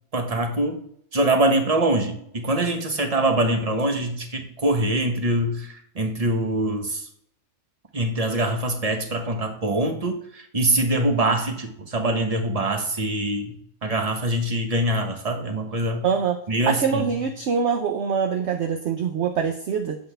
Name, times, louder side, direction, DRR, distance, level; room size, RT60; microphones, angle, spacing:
voice 1, 0.1-0.8 1.1-7.1 7.9-13.5 13.8-16.0 16.5-17.0, right 1 dB, 30° right, 5 dB, 1.0 m, -24 dB
voice 2, 16.0-16.4 16.7-20.0, right 6 dB, 60° right, 5 dB, 0.9 m, -24 dB
7.9 x 5.7 x 3.3 m, 0.69 s
omnidirectional pair, 1.4 m